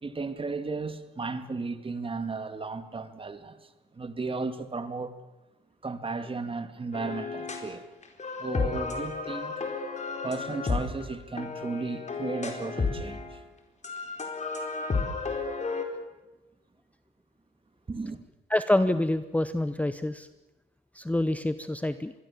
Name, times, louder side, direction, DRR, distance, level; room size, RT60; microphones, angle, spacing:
voice 1, 0.0-5.2 5.8-7.8 8.4-9.5 10.2-13.4 17.9-18.2, right 3 dB, 25° right, 2.1 m, -35 dB
sound 1, 6.9-7.7 8.0-13.3 13.8-15.8, left 4 dB, 35° left, 4.3 m, -32 dB
voice 2, 18.5-20.3 20.9-22.1, left 1 dB, 5° left, 0.8 m, -26 dB
25.5 x 21.0 x 7.3 m
cardioid pair, 90°, 20 cm